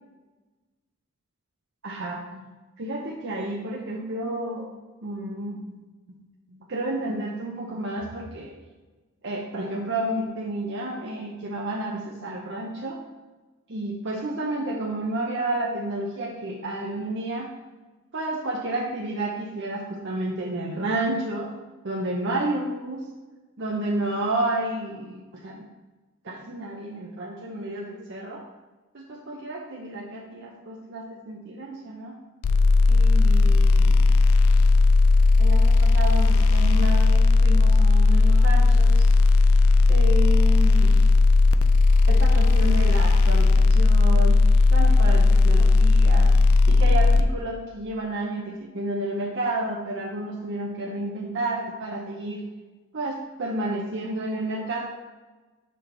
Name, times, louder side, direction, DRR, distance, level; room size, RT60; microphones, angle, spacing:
voice 1, 1.8-2.4 2.8-4.7 5.0-5.8 6.1-6.2 6.5-8.5 9.2-13.0 13.7-17.5 18.1-21.5 21.8-23.1 23.6-25.6 26.2-28.4 28.9-32.2 32.9-34.1 35.4-39.0 39.9-41.0 42.1-44.4 44.7-46.3 46.7-52.4 52.9-54.9, right 1 dB, 55° right, -3 dB, 0.8 m, -31 dB
sound 1, 32.4-47.2, left 3 dB, 75° left, 0.4 m, -17 dB
5.9 x 5.0 x 3.9 m, 1.2 s
head